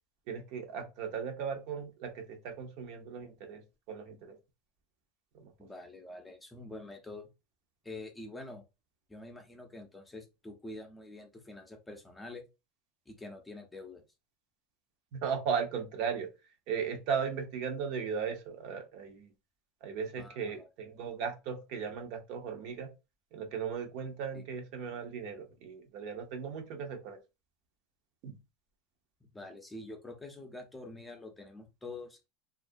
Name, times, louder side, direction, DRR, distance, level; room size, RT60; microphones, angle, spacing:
voice 1, 0.3-4.4 5.3-5.5 15.1-16.3 16.7-19.3 19.8-22.9 23.3-27.2 28.2-28.4, right 6 dB, 60° right, 0.7 m, -37 dB
voice 2, 5.6-7.3 7.8-8.6 9.1-12.4 13.1-14.0 20.2-20.6 24.3-24.5 29.3-32.3, left 2 dB, 10° left, 0.5 m, -46 dB
2.3 x 2.0 x 2.5 m
supercardioid pair, 125°, 0 cm